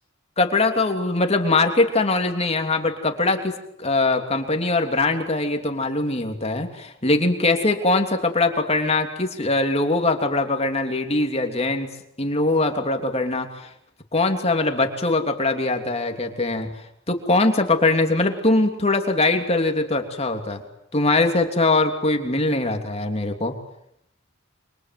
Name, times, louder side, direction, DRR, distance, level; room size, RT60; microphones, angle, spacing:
voice 1, 0.4-3.5 3.8-11.9 12.2-13.7 14.1-16.7 17.1-20.6 20.9-23.5, left 2 dB, 30° left, 5 dB, 3.1 m, -22 dB
28.5 x 25.5 x 7.9 m, 0.74 s
head